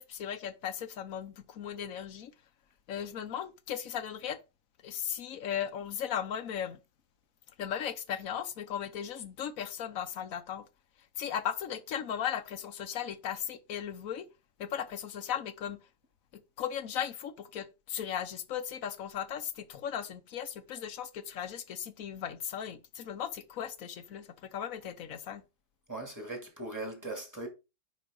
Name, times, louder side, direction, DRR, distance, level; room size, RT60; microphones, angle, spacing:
voice 1, 0.0-2.3 2.9-4.4 4.8-6.8 7.6-10.6 11.2-14.3 14.6-15.8 16.6-25.4, left 9 dB, 85° left, 1.3 m, -37 dB
voice 2, 25.9-27.5, right 2 dB, 15° right, 2.6 m, -39 dB
9.4 x 5.4 x 3.9 m
omnidirectional pair, 1.4 m